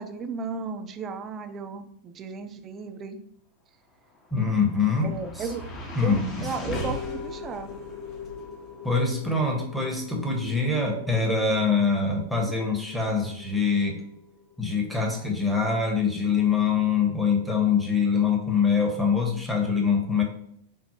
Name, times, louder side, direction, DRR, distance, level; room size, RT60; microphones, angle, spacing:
voice 1, 0.0-3.2 5.0-5.6 6.0-7.7, right 5 dB, 25° right, 7 dB, 0.4 m, -35 dB
sound 1, 4.1-16.5, left 3 dB, 30° left, 0.8 m, -40 dB
voice 2, 4.3-5.5 5.9-6.5 8.8-14.0 14.6-20.2, left 5 dB, ahead, -1 dB, 0.9 m, -24 dB
5.2 x 2.0 x 2.8 m, 0.71 s
figure-of-eight pair, 95°, 0 cm